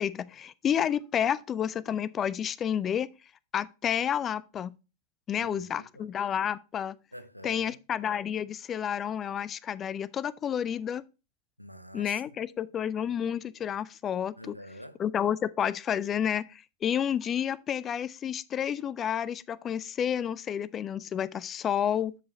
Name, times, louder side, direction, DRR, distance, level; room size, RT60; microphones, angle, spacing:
voice 1, 0.0-3.1 3.5-4.7 5.3-7.0 7.4-11.0 11.9-14.6 15.0-22.1, left 9 dB, 25° left, 0.4 m, -30 dB
voice 2, 5.3-6.1 7.1-7.8 11.6-12.2 14.4-15.0, equal, 90° right, 0.5 m, -46 dB
7.9 x 5.3 x 4.0 m
figure-of-eight pair, 90°, 0 cm